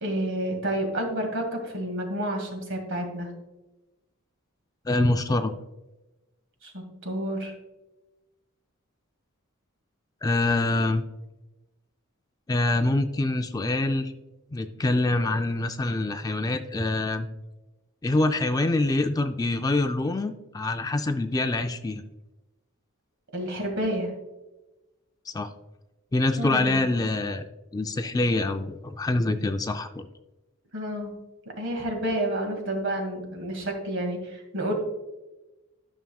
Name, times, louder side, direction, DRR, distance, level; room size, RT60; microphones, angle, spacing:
voice 1, 0.0-3.3 6.6-7.5 23.3-24.1 26.4-26.8 30.7-31.1 31.6-34.7, right 1 dB, 60° right, 3 dB, 2.0 m, -30 dB
voice 2, 4.9-5.5 10.2-11.0 12.5-14.1 14.5-17.3 18.0-22.0 25.3-25.5 26.1-27.4 27.7-30.1, left 2 dB, 15° left, 8 dB, 0.3 m, -25 dB
12.5 x 6.0 x 2.3 m, 1.0 s
head